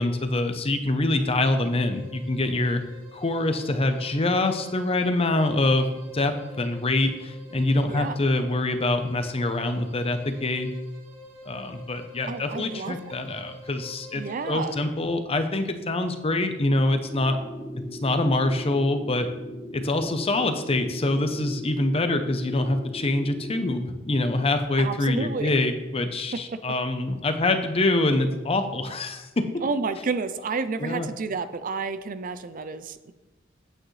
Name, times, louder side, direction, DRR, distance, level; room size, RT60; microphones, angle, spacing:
voice 1, 0.0-2.8 3.1-5.9 6.1-10.7 11.5-17.4 18.0-19.3 19.7-29.5 30.8-31.1, left 2 dB, 30° left, 8 dB, 0.7 m, -25 dB
sound 1, 1.3-15.0, left 2 dB, 75° right, 1.9 m, -48 dB
voice 2, 12.3-13.0 14.1-14.8 24.8-25.5 26.5-26.6 29.6-33.1, right 4 dB, 45° right, 12 dB, 0.4 m, -30 dB
sound 2, 17.0-23.6, equal, 10° right, 1.7 m, -40 dB
8.9 x 8.5 x 3.2 m, 1.1 s
head